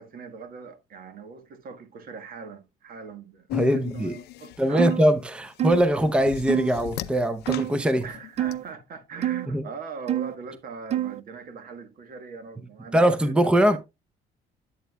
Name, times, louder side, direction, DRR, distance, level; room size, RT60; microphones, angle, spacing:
voice 1, 0.0-3.5 3.7-4.9 8.0-13.8, right 5 dB, 60° right, 1.4 m, -41 dB
sound 1, 3.5-8.5, left 15 dB, 75° left, 0.6 m, -38 dB
voice 2, 3.5-4.1 4.6-8.1 9.5-9.6 12.9-13.8, equal, 5° right, 0.7 m, -22 dB
sound 2, 4.8-5.0 5.6-5.9 6.5-6.7 7.5-7.8 8.4-8.6 9.2-9.5 10.1-10.4 10.9-11.2, right 12 dB, 40° right, 0.4 m, -26 dB
10.0 x 7.9 x 2.2 m
cardioid pair, 110°, 17 cm